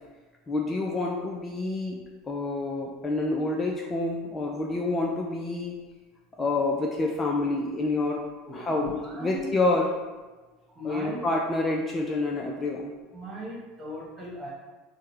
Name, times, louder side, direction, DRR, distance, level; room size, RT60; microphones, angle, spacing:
voice 1, 0.5-2.0 2.3-5.7 6.4-8.2 8.5-8.9 9.2-9.9 10.8-12.9, left 2 dB, 25° left, 0 dB, 0.4 m, -28 dB
voice 2, 8.4-9.5 10.7-11.2 13.1-14.5, left 1 dB, 20° right, -4 dB, 1.5 m, -37 dB
5.4 x 2.2 x 3.3 m, 1.3 s
figure-of-eight pair, 75°, 0 cm